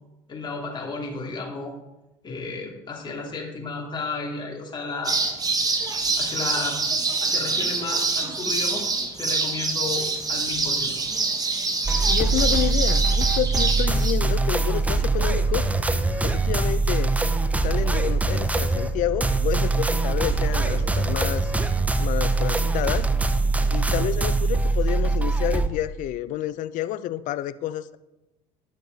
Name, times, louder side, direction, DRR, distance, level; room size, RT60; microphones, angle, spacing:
voice 1, 0.3-1.7 2.2-5.2 5.6-5.9 6.2-6.8 7.2-8.9 9.2-10.9, left 4 dB, 30° left, -2 dB, 2.8 m, -33 dB
sound 1, 5.0-14.1, right 3 dB, 25° right, 1.2 m, -25 dB
sound 2, 11.8-25.7, right 3 dB, 10° right, 0.6 m, -23 dB
voice 2, 12.1-15.7 16.2-17.1 17.6-21.5 22.0-23.1 23.7-28.0, left 13 dB, 60° left, 16 dB, 0.5 m, -29 dB
11.5 x 6.6 x 4.0 m, 1.0 s
supercardioid pair, 105°, 15 cm